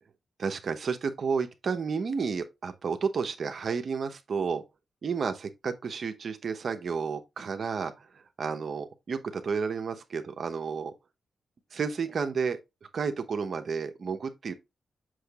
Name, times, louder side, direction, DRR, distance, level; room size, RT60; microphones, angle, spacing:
voice 1, 0.4-4.6 5.0-10.9 11.7-12.6 12.9-14.5, right 5 dB, 65° right, 0.9 m, -31 dB
6.4 x 6.2 x 2.4 m
cardioid pair, 65°, 0 cm